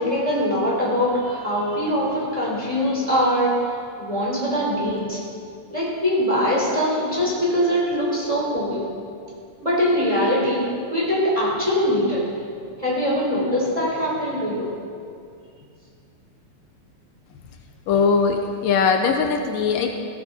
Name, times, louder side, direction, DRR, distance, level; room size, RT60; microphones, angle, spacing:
voice 1, 0.0-3.6 4.0-5.2 5.7-8.8 9.6-12.3 12.8-14.7, equal, 10° right, -6 dB, 4.4 m, -22 dB
voice 2, 17.9-19.9, left 5 dB, 80° left, 4 dB, 2.6 m, -20 dB
17.0 x 16.5 x 4.4 m, 2.3 s
omnidirectional pair, 3.9 m